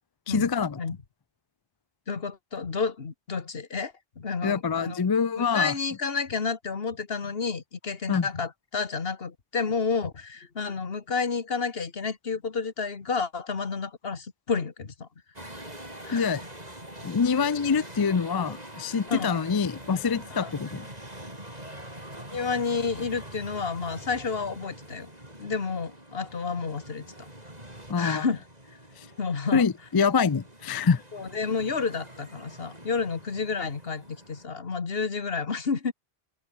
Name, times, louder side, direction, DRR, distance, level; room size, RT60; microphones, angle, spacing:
voice 1, 0.3-0.8 4.4-5.7 8.1-8.3 16.1-16.4 17.0-20.9 27.9-28.2 29.0-29.1 29.5-31.0, left 5 dB, 35° left, 0.3 m, -25 dB
voice 2, 2.1-5.0 5.4-15.1 16.0-16.3 19.1-19.4 20.3-20.5 22.3-25.1 25.4-27.1 28.0-28.4 29.2-29.7 31.1-35.9, left 5 dB, 60° left, 1.8 m, -30 dB
sound 1, 15.4-34.5, right 1 dB, 35° right, 7.4 m, -44 dB
open air
omnidirectional pair, 1.2 m